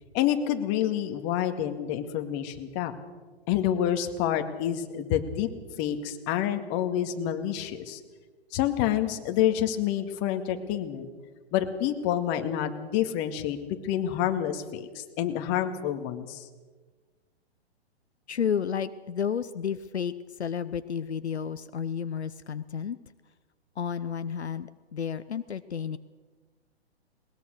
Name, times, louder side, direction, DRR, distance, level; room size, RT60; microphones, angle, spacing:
voice 1, 0.1-2.9 3.5-5.5 5.8-8.0 8.5-11.1 11.5-13.6 13.8-16.5, left 10 dB, 35° left, 7 dB, 2.1 m, -28 dB
voice 2, 18.3-23.0 23.8-26.0, left 7 dB, 80° left, 13 dB, 0.9 m, -31 dB
20.5 x 20.5 x 6.5 m, 1.3 s
figure-of-eight pair, 120°, 33 cm